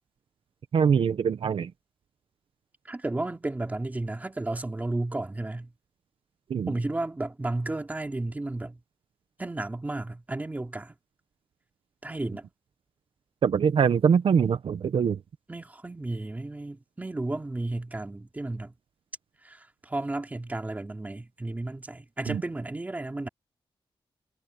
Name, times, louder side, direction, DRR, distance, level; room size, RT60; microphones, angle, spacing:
voice 1, 0.7-1.7 6.5-6.7 13.4-15.2 22.3-22.4, right 7 dB, 70° right, 0.8 m, -23 dB
voice 2, 2.9-5.7 6.7-8.8 9.4-10.9 12.0-12.5 15.5-18.7 19.4-23.3, right 2 dB, 15° right, 2.5 m, -33 dB
wide cardioid pair, 165°, 10 cm